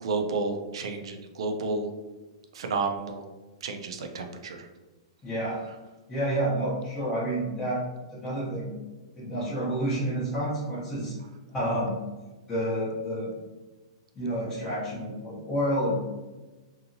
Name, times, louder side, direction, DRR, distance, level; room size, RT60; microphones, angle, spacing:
voice 1, 0.0-1.9 2.5-3.2 3.6-4.7, right 3 dB, 70° right, 5 dB, 0.4 m, -31 dB
voice 2, 5.2-5.6 6.1-7.8 8.1-8.7 9.2-11.1 11.5-11.9 12.5-13.3 14.1-16.0, right 1 dB, 10° left, -11 dB, 0.7 m, -29 dB
2.7 x 2.7 x 2.6 m, 1.2 s
hypercardioid pair, 165°, 3 cm